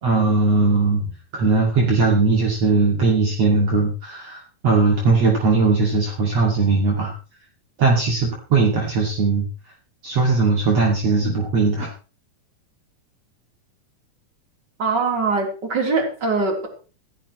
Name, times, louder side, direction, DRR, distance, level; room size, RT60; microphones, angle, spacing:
voice 1, 0.0-7.1 7.8-9.5 10.0-11.9, right 3 dB, 50° right, -1 dB, 3.4 m, -19 dB
voice 2, 14.8-16.7, right 4 dB, 30° right, 1 dB, 4.2 m, -22 dB
16.0 x 16.0 x 3.2 m, 0.36 s
omnidirectional pair, 3.8 m